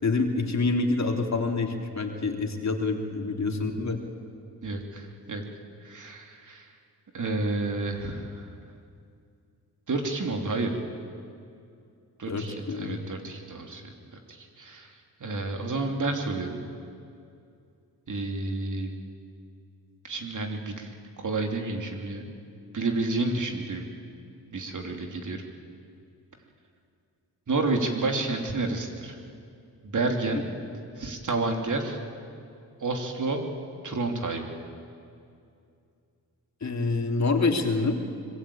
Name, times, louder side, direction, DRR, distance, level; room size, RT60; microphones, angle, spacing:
voice 1, 0.0-4.0 12.3-13.0 30.3-30.4 36.6-38.0, left 3 dB, 45° left, 3 dB, 3.2 m, -27 dB
voice 2, 4.6-5.4 5.8-6.7 7.1-8.5 9.9-10.8 12.2-13.9 14.3-14.9 15.2-16.6 18.1-18.9 20.0-22.3 22.7-23.8 24.5-25.4 27.5-29.1 29.8-30.5 31.0-32.0 32.8-33.4 33.8-34.5, right 3 dB, 50° right, 3 dB, 3.3 m, -30 dB
25.0 x 22.0 x 8.8 m, 2.5 s
cardioid pair, 65°, 38 cm